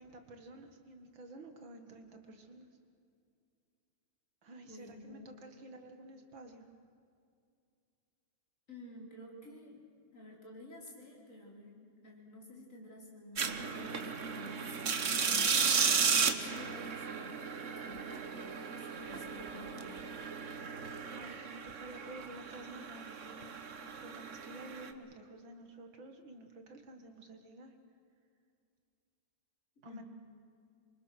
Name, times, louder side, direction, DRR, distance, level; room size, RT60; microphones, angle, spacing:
voice 1, 0.0-2.7 4.4-6.7 21.1-27.7 29.8-30.0, right 1 dB, 70° right, 5 dB, 2.6 m, -51 dB
voice 2, 4.7-5.3 8.7-9.9 10.1-16.1 16.3-20.2 29.8-30.0, left 1 dB, 40° left, -2 dB, 4.6 m, -52 dB
sound 1, 13.4-24.9, right 6 dB, 45° right, 1.3 m, -35 dB
27.0 x 24.0 x 6.5 m, 2.4 s
omnidirectional pair, 2.2 m